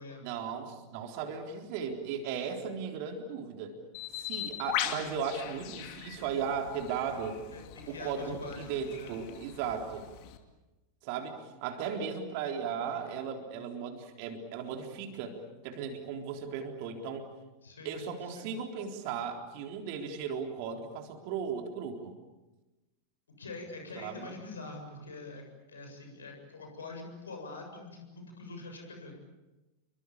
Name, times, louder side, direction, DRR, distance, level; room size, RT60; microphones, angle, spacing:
voice 1, 0.2-3.8 4.1-7.4 7.9-10.1 11.0-17.3 17.8-22.1 24.0-24.3, right 6 dB, 45° right, 4 dB, 3.9 m, -36 dB
Bird, 3.9-10.4, left 11 dB, 45° left, 2.6 m, -40 dB
voice 2, 7.5-9.2 17.6-18.5 23.4-29.1, left 3 dB, 70° left, 4 dB, 7.4 m, -45 dB
29.5 x 24.0 x 7.1 m, 1.1 s
figure-of-eight pair, 90°, 0 cm